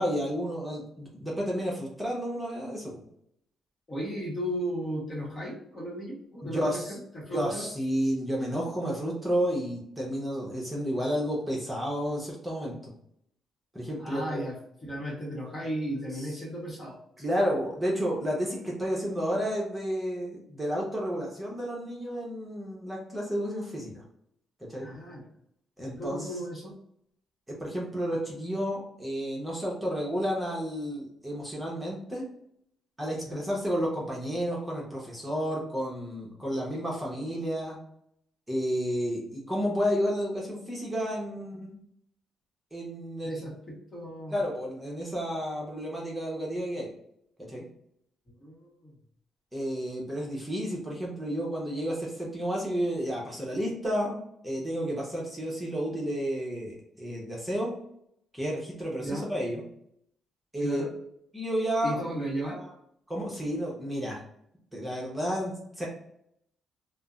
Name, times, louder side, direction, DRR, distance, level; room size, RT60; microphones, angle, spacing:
voice 1, 0.0-3.0 6.4-6.9 7.3-12.9 13.7-14.4 17.2-24.0 24.6-24.9 25.8-26.3 27.5-32.3 33.0-37.8 38.5-41.7 42.7-43.4 44.3-46.9 47.4-47.6 49.5-57.7 58.3-59.6 60.5-60.8 61.3-62.0 62.5-62.7 63.1-64.2 64.7-65.9, equal, 10° right, -3 dB, 0.9 m, -31 dB
voice 2, 3.9-7.8 14.0-14.6 14.8-17.0 24.8-25.3 25.8-26.7 33.2-33.4 43.2-44.4 48.4-48.9 59.0-59.3 60.6-60.9 61.8-62.6, equal, 35° left, -3 dB, 1.1 m, -35 dB
2.5 x 2.1 x 3.5 m, 0.72 s
cardioid pair, 90°, 0 cm